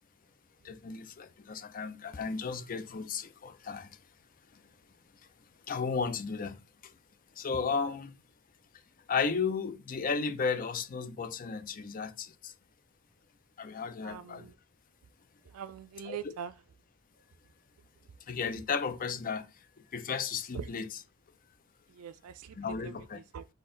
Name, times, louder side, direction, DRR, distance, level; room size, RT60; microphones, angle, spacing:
voice 1, 0.6-3.9 5.7-6.6 6.8-6.9 7.4-8.1 9.1-12.5 13.6-14.5 16.1-16.2 18.3-19.5 19.9-20.9 22.6-23.2, left 5 dB, 40° left, 0.5 m, -34 dB
voice 2, 14.0-14.5 15.4-16.5 20.5-20.7 21.9-23.5, right 7 dB, 85° right, 0.4 m, -43 dB
4.2 x 2.9 x 3.7 m
head